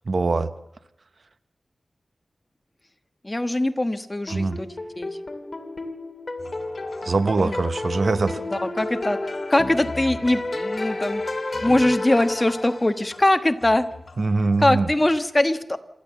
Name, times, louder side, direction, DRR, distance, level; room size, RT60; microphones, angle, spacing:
voice 1, 0.1-0.5 4.3-4.6 7.0-8.4 14.2-14.9, right 3 dB, 60° right, 12 dB, 1.1 m, -22 dB
voice 2, 3.2-4.7 5.0-5.2 7.1-7.6 8.5-9.2 9.5-11.2 11.6-13.8 14.6-15.8, left 1 dB, 20° left, 9 dB, 1.3 m, -22 dB
sound 1, 4.3-13.2, left 2 dB, 35° left, 2.7 m, -31 dB
sound 2, 6.4-14.9, left 2 dB, 55° left, 3.7 m, -42 dB
27.0 x 12.5 x 7.8 m, 0.87 s
wide cardioid pair, 100°, 0 cm